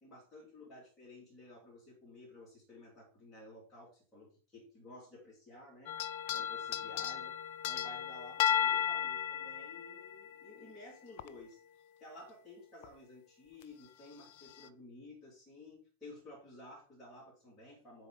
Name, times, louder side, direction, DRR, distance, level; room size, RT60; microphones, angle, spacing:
voice 1, 0.0-7.4 7.6-11.6 12.0-18.1, left 2 dB, 15° left, -6 dB, 3.0 m, -54 dB
sound 1, 5.9-10.7 11.2-11.3 12.8-12.9 13.6-13.7 14.4-14.7, left 9 dB, 50° left, 0.4 m, -34 dB
6.6 x 4.2 x 3.7 m, 0.39 s
figure-of-eight pair, 90°, 0 cm